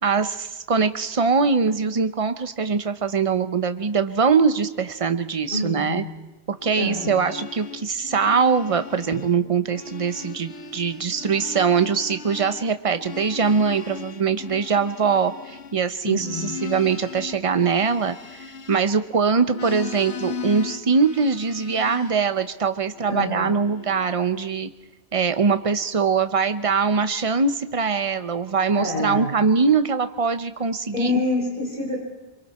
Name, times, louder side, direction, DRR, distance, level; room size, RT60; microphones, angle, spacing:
voice 1, 0.0-6.0 6.5-24.7 25.1-31.2, right 5 dB, 35° right, 9 dB, 0.9 m, -22 dB
voice 2, 5.5-6.2 6.7-7.2 16.0-16.6 23.1-23.5 28.7-29.3 30.9-32.0, left 2 dB, 50° left, -3 dB, 5.1 m, -27 dB
sound 1, 6.6-9.4 9.6-19.1 19.5-22.3 22.9-24.2, left 5 dB, 85° left, 1.5 m, -38 dB
Drum, 9.1-11.0, right 4 dB, 50° right, 1.4 m, -42 dB
26.0 x 24.0 x 4.3 m, 1.1 s
omnidirectional pair, 1.1 m